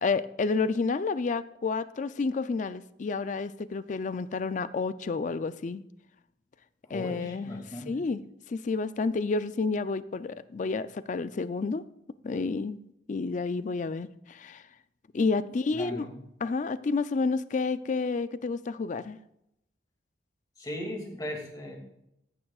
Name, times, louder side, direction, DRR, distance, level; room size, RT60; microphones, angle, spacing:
voice 1, 0.0-5.8 6.9-11.8 12.2-12.8 13.1-14.6 15.1-16.1 16.4-19.2, left 4 dB, 45° left, 14 dB, 0.4 m, -30 dB
voice 2, 6.8-8.0 15.7-16.2 20.6-21.8, equal, 20° left, 1 dB, 2.3 m, -38 dB
14.5 x 9.8 x 2.4 m, 0.81 s
head